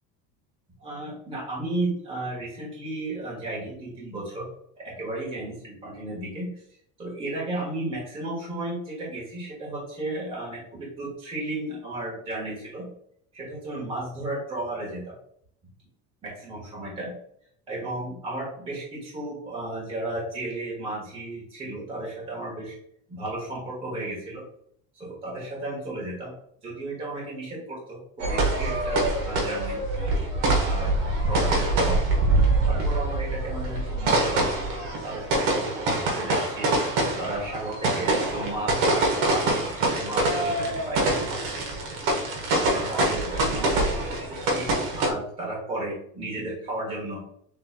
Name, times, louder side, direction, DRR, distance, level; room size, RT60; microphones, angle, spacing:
voice 1, 0.8-4.5 4.8-6.5 7.0-12.9 13.3-15.1 16.2-17.1 17.7-22.8 23.1-24.4 24.9-26.3 26.6-29.8 30.6-30.9 31.3-32.0 32.7-34.4 35.0-36.7 37.2-41.7 42.5-47.2, right 2 dB, 20° right, -4 dB, 1.5 m, -34 dB
sound 1, 28.2-45.1, right 2 dB, 60° right, 1.3 m, -25 dB
7.0 x 3.4 x 2.2 m, 0.67 s
cardioid pair, 170°, 29 cm